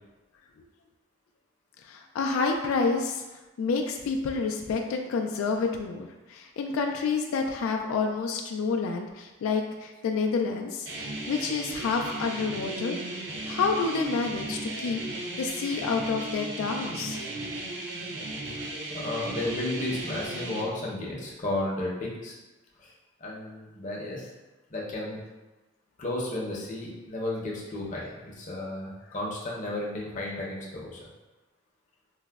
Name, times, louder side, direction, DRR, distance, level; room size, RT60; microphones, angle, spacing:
voice 1, 1.9-3.2 3.6-13.0 13.5-17.2, left 4 dB, 85° left, 3 dB, 0.3 m, -29 dB
sound 1, 10.9-20.6, right 2 dB, 60° right, 0.5 m, -36 dB
voice 2, 18.5-22.3 22.8-22.9 23.2-24.3 24.7-25.2 26.0-31.0, left 1 dB, 35° left, -4 dB, 0.6 m, -33 dB
4.7 x 2.0 x 2.2 m, 1.1 s
head